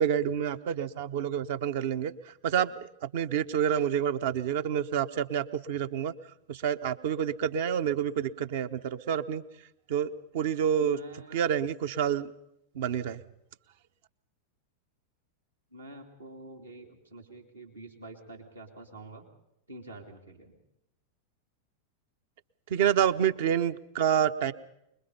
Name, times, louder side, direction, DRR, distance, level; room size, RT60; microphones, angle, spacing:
voice 1, 0.0-6.1 6.5-9.4 9.9-11.0 11.3-12.3 12.7-13.2 22.7-24.5, right 9 dB, 55° right, 10 dB, 0.9 m, -28 dB
voice 2, 10.8-11.5 15.7-19.3 19.7-20.6, right 2 dB, 80° right, 1 dB, 2.9 m, -47 dB
25.5 x 21.5 x 5.5 m, 0.81 s
figure-of-eight pair, 90°, 0 cm